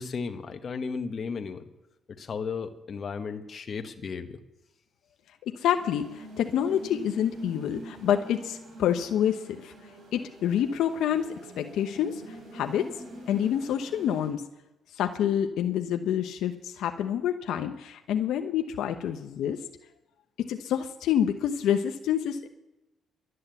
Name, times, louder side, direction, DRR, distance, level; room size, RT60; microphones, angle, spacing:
voice 1, 0.0-1.7 2.1-4.4, left 5 dB, 50° left, 7 dB, 1.3 m, -35 dB
voice 2, 5.5-9.7 10.1-11.3 11.6-12.9 13.3-14.4 15.0-19.6 20.4-22.5, left 9 dB, 80° left, 6 dB, 0.9 m, -27 dB
sound 1, 5.7-14.3, right 1 dB, 70° right, 4.9 m, -45 dB
12.5 x 9.7 x 8.0 m, 0.97 s
cardioid pair, 90°, 0 cm